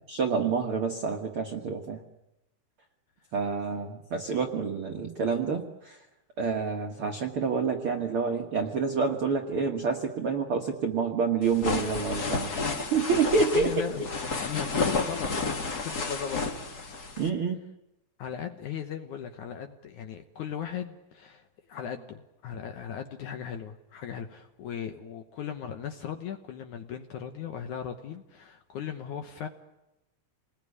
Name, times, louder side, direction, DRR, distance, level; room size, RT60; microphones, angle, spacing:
voice 1, 0.1-2.0 3.3-6.0 6.4-12.5 12.9-13.9 17.2-17.6, right 5 dB, 60° right, 1.4 m, -28 dB
sound 1, 11.4-17.3, left 4 dB, 50° left, 1.1 m, -31 dB
voice 2, 13.5-15.3 15.7-16.4 18.2-29.5, left 8 dB, 65° left, 2.0 m, -37 dB
28.5 x 20.5 x 9.7 m
omnidirectional pair, 4.6 m